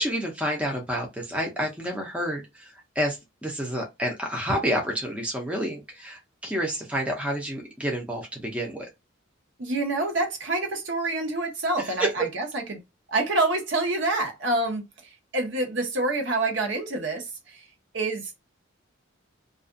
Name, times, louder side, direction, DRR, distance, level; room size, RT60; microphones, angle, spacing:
voice 1, 0.0-8.9 12.0-12.1, equal, 5° right, 0.5 m, -29 dB
voice 2, 9.6-12.8 13.1-14.8 15.3-17.6 17.9-18.4, right 2 dB, 60° right, 0.8 m, -27 dB
2.4 x 2.2 x 2.5 m
head